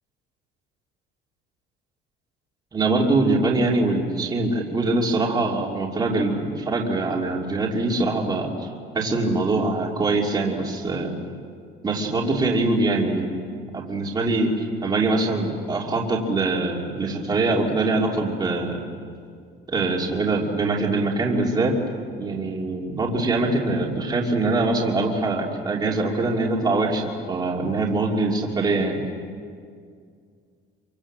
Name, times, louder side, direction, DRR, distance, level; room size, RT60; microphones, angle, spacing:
voice 1, 2.7-8.7 8.9-11.1 11.8-18.8 19.7-21.7 22.2-29.0, right 2 dB, 20° right, -2 dB, 2.9 m, -23 dB
27.0 x 24.5 x 7.5 m, 2.2 s
cardioid pair, 160°, 21 cm